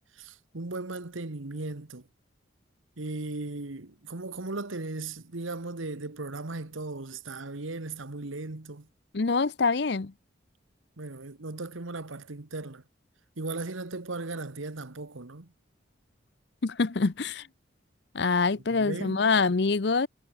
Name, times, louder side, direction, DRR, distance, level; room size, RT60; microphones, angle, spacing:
voice 1, 0.1-2.1 3.0-8.9 11.0-12.8 13.4-15.5 18.7-19.4, right 2 dB, 85° right, 1.5 m, -37 dB
voice 2, 9.1-10.1 16.6-17.5 18.1-20.1, left 4 dB, 55° left, 0.6 m, -25 dB
head